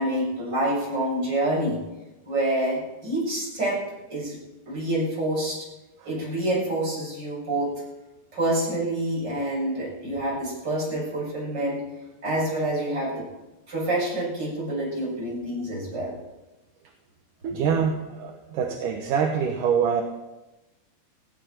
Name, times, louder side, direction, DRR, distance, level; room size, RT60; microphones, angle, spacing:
voice 1, 0.0-1.8 2.2-3.8 4.1-4.4 4.7-5.7 6.0-7.7 8.3-11.8 12.2-13.3 13.7-16.1, right 1 dB, 30° right, -5 dB, 7.6 m, -27 dB
voice 2, 17.4-20.0, right 7 dB, 70° right, 3 dB, 2.7 m, -25 dB
19.5 x 16.0 x 4.5 m, 1.0 s
omnidirectional pair, 4.0 m